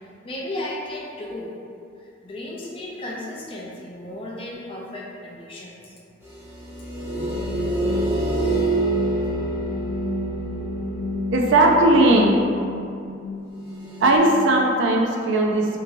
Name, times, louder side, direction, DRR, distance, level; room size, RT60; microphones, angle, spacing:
voice 1, 0.2-1.5 2.0-6.0, left 1 dB, 25° left, -3 dB, 0.3 m, -34 dB
sound 1, 6.2-12.2 13.8-14.2, right 2 dB, 10° right, 0.7 m, -27 dB
sound 2, 7.0-14.7, left 3 dB, 55° right, 0.8 m, -33 dB
voice 2, 11.3-12.3 14.0-15.8, right 1 dB, 70° right, 0 dB, 0.4 m, -17 dB
2.9 x 2.7 x 2.5 m, 2.4 s
head